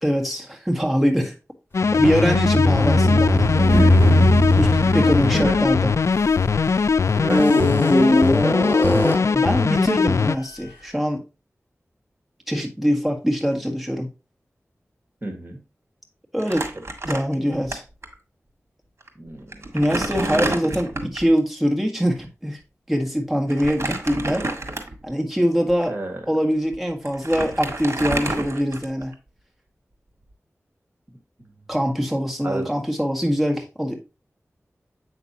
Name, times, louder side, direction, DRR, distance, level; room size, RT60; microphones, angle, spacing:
voice 1, 0.0-1.3 1.9-3.5 4.5-5.9 9.3-11.2 12.5-14.1 16.3-16.7 17.0-17.8 19.7-22.6 22.9-24.5 25.0-25.9 26.3-29.1 31.7-34.0, equal, 5° right, 1 dB, 1.6 m, -23 dB
sound 1, 1.7-10.4, left 5 dB, 70° left, 0.3 m, -20 dB
sound 2, 1.8-6.6 7.2-9.4, left 1 dB, 45° left, 3.6 m, -20 dB
voice 2, 3.7-4.2 5.3-5.6 7.1-9.3 15.2-15.6 16.7-16.8 17.1-17.2 19.2-19.8 20.2-20.7 23.9-24.0 25.9-26.2 31.4-31.6 32.4-32.7, right 2 dB, 40° right, 5 dB, 1.7 m, -29 dB
Crumpling crinkling, 16.4-17.7 18.0-18.1 19.0-19.1 19.5-21.3 23.5-25.1 25.7-25.8 26.7-26.8 27.1-29.1, right 2 dB, 55° right, 1.7 m, -29 dB
8.0 x 5.9 x 2.8 m, 0.29 s
wide cardioid pair, 80°, 5 cm